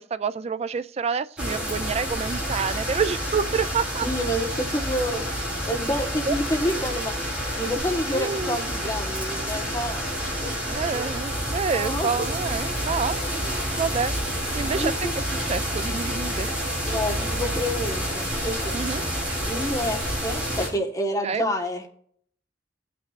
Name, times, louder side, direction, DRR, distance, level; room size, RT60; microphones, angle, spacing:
voice 1, 0.0-4.1 6.3-6.4 8.1-8.6 10.7-14.1 14.5-15.1 15.4-16.5 18.7-19.0 21.2-21.5, right 5 dB, 35° right, 0.4 m, -28 dB
sound 1, 1.4-20.7, equal, 5° right, 3.3 m, -29 dB
voice 2, 4.0-5.3 5.6-7.2 7.6-11.2 11.7-12.1 14.6-15.1 16.9-18.8 19.5-21.9, equal, 20° left, 1.3 m, -29 dB
18.0 x 6.1 x 2.5 m
head